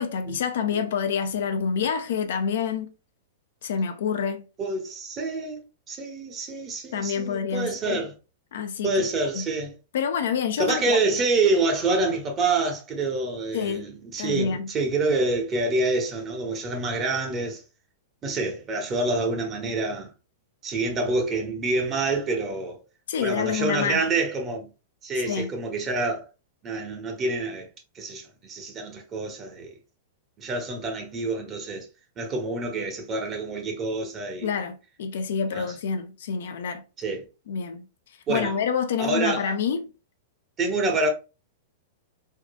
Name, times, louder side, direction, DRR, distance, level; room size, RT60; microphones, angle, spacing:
voice 1, 0.0-2.9 3.6-4.4 6.9-8.0 8.5-9.0 9.4-9.5 9.9-11.0 13.5-13.9 14.2-14.7 23.1-24.1 25.2-25.5 34.4-36.8 37.5-37.8 38.3-39.9, left 7 dB, 60° left, 0.4 m, -27 dB
voice 2, 4.6-8.1 8.8-9.7 10.6-17.6 18.2-20.1 20.6-22.8 23.2-24.7 25.0-26.3 26.6-27.7 27.9-29.7 30.4-31.9 32.2-34.5 35.5-35.7 37.0-37.2 38.3-38.6 39.0-39.5 40.6-41.1, right 3 dB, 25° right, 1.0 m, -27 dB
3.6 x 2.3 x 2.2 m
figure-of-eight pair, 100°, 0 cm